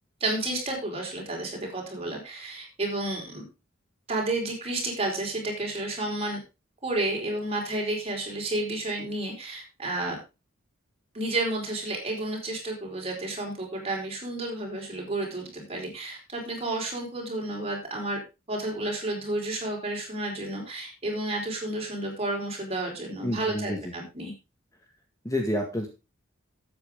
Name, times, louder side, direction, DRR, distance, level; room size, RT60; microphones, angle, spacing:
voice 1, 0.2-3.4 4.1-6.4 6.8-10.2 11.1-18.2 18.5-24.3, right 2 dB, 30° right, 0 dB, 4.9 m, -31 dB
voice 2, 23.2-23.8 25.2-25.9, left 1 dB, 15° left, 3 dB, 1.8 m, -28 dB
12.5 x 8.6 x 3.7 m, 0.27 s
head